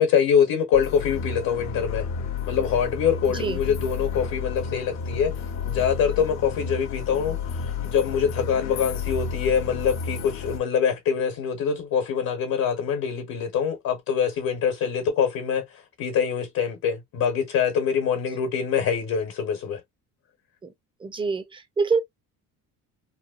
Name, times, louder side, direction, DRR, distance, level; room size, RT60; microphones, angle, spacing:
voice 1, 0.0-2.1 2.5-5.3 5.6-7.4 7.8-15.6 16.0-19.8, left 7 dB, 65° left, 1.1 m, -24 dB
sound 1, 0.7-10.6, left 6 dB, 45° left, 0.7 m, -31 dB
voice 2, 21.0-22.0, right 4 dB, 15° right, 0.4 m, -25 dB
3.0 x 2.2 x 2.3 m
cardioid pair, 110°, 38 cm